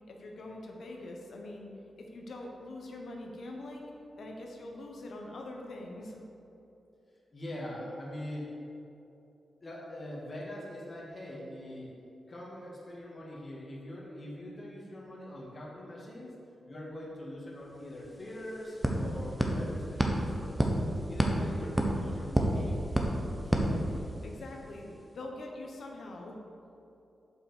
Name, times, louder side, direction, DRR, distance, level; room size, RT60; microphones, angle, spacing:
voice 1, 0.1-1.7 2.0-6.2 23.4-26.4, left 2 dB, 70° left, 0 dB, 1.2 m, -44 dB
voice 2, 7.3-8.5 9.6-11.9 12.3-16.3 16.7-20.6 21.1-22.7, left 1 dB, 45° left, -5 dB, 2.2 m, -42 dB
sound 1, 17.7-17.8 18.0-24.5, right 1 dB, 10° right, 1.2 m, -30 dB
7.7 x 5.6 x 6.7 m, 2.9 s
cardioid pair, 75°, 0 cm